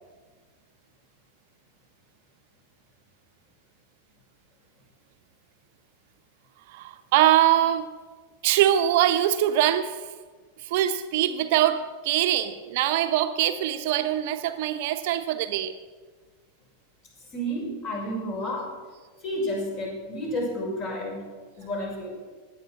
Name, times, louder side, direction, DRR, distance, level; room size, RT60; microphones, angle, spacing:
voice 1, 6.7-7.9 8.4-10.0 10.6-15.7, right 12 dB, 50° right, 9 dB, 0.9 m, -23 dB
voice 2, 17.3-18.7 19.2-21.3 21.6-22.2, equal, 40° left, -1 dB, 6.1 m, -31 dB
17.0 x 10.5 x 6.1 m, 1.4 s
figure-of-eight pair, 90°, 0 cm